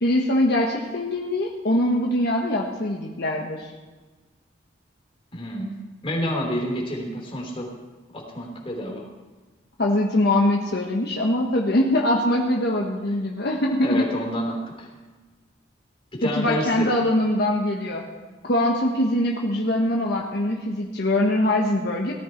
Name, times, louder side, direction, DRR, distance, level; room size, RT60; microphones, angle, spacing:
voice 1, 0.0-3.7 9.8-14.0 16.2-18.0 18.5-22.1, left 1 dB, 65° left, -1 dB, 1.4 m, -22 dB
voice 2, 5.3-5.7 6.0-7.7 8.1-9.1 13.8-14.9 16.1-17.0, equal, 30° left, -1 dB, 3.5 m, -29 dB
18.0 x 12.5 x 4.6 m, 1.3 s
head